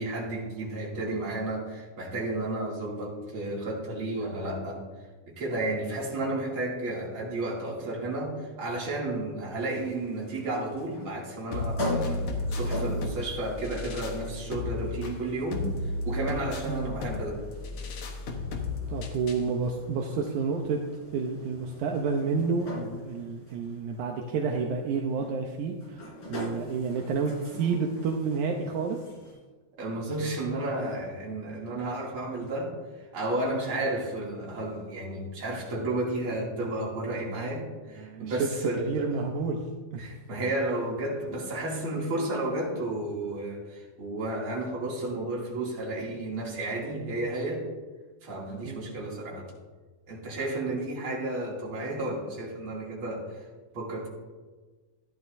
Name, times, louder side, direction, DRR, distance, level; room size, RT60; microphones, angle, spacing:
voice 1, 0.0-4.8 5.3-17.4 29.8-32.7 33.1-39.1 40.0-47.7 48.2-49.5 50.1-53.4 53.7-54.1, right 2 dB, 40° right, -4 dB, 3.1 m, -32 dB
sound 1, 9.6-29.3, left 1 dB, 40° left, 4.3 m, -42 dB
sound 2, 11.5-19.5, left 2 dB, 60° left, 1.7 m, -34 dB
voice 2, 18.9-20.8 21.1-26.0 26.3-29.0 38.0-38.5 38.9-39.6 39.9-40.1 48.7-48.8, right 5 dB, 80° right, 2 dB, 2.2 m, -30 dB
14.5 x 11.0 x 2.6 m, 1.3 s
omnidirectional pair, 3.6 m